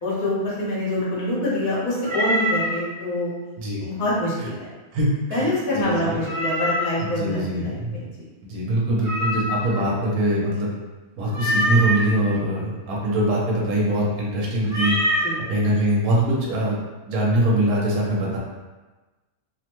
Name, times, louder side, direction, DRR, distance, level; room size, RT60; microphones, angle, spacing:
voice 1, 0.0-3.3 3.8-4.7 5.3-8.2 15.2-15.4, left 1 dB, 70° left, -7 dB, 1.4 m, -25 dB
Meow, 2.0-2.8 6.2-7.0 9.0-9.8 11.3-12.1 14.7-15.3, equal, 50° right, 0.7 m, -24 dB
voice 2, 4.9-5.4 5.8-6.2 7.0-8.0 8.5-10.7 11.2-15.0 15.5-18.4, right 1 dB, 75° right, -4 dB, 1.2 m, -23 dB
3.0 x 2.1 x 2.9 m, 1.2 s
omnidirectional pair, 1.6 m